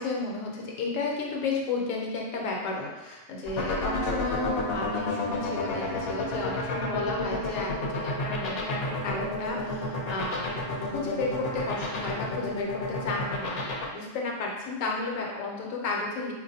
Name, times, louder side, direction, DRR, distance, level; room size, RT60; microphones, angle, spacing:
voice 1, 0.0-10.6 10.8-16.3, left 3 dB, 75° left, -1 dB, 1.1 m, -33 dB
sound 1, 3.5-13.8, left 3 dB, 55° left, 0.8 m, -30 dB
4.5 x 2.5 x 2.7 m, 1.2 s
omnidirectional pair, 1.4 m